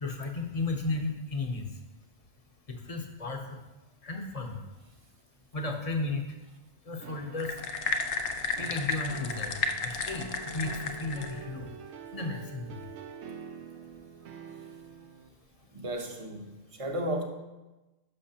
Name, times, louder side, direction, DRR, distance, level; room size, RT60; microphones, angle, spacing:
voice 1, 0.0-1.7 2.7-3.4 4.0-4.6 5.5-6.2 6.9-7.5 8.6-9.6 9.8-10.3 10.5-11.7 12.1-12.8, left 3 dB, 35° left, 0.8 m, -34 dB
sound 1, 7.0-15.3, right 6 dB, 80° right, 0.9 m, -46 dB
sound 2, 7.4-11.4, left 4 dB, 75° left, 0.9 m, -32 dB
voice 2, 15.7-17.2, equal, 30° right, 0.8 m, -34 dB
11.0 x 6.2 x 2.8 m
omnidirectional pair, 1.2 m